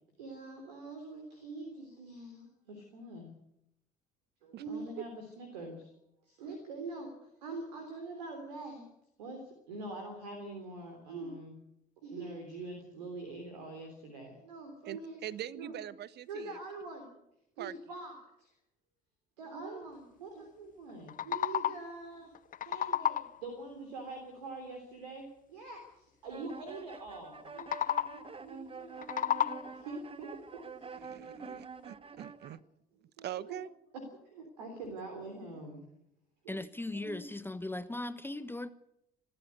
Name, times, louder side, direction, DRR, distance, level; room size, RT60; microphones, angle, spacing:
voice 1, 0.2-3.3 4.4-5.9 6.3-8.9 9.2-11.6 12.0-15.2 15.5-15.7 16.3-17.1 17.6-18.5 19.4-22.3 22.6-27.7 28.0-30.3 30.6-31.9 33.2-33.5 33.9-35.8 36.4-36.6 36.9-37.3, right 3 dB, 80° right, 5 dB, 3.5 m, -44 dB
voice 2, 14.8-16.6 17.6-17.7 31.0-32.6 33.2-33.7 34.6-34.7 35.3-35.6, right 11 dB, 50° right, 18 dB, 1.1 m, -43 dB
sound 1, 20.9-22.0 22.3-23.5 27.5-28.4 28.8-29.9, left 10 dB, 40° left, 0.7 m, -33 dB
sound 2, 26.2-32.6, right 5 dB, 25° right, 1.3 m, -47 dB
voice 3, 36.5-38.7, left 2 dB, 10° left, 12 dB, 1.2 m, -38 dB
25.0 x 13.5 x 8.2 m, 0.81 s
figure-of-eight pair, 55°, 21 cm